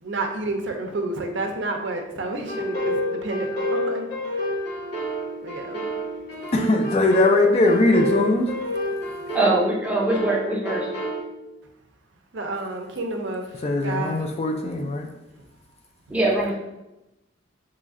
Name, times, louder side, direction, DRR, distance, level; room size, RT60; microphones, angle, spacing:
voice 1, 0.0-4.1 5.4-5.9 9.2-9.3 12.3-14.3 16.1-16.2, right 2 dB, 70° right, 3 dB, 0.5 m, -30 dB
sound 1, 2.5-11.2, equal, 60° left, 1.0 m, -28 dB
voice 2, 6.5-8.5 13.6-15.1, left 2 dB, 35° left, 4 dB, 0.3 m, -20 dB
voice 3, 9.3-10.9 16.1-16.5, right 1 dB, 10° right, -4 dB, 0.6 m, -22 dB
3.0 x 2.4 x 3.6 m, 0.95 s
head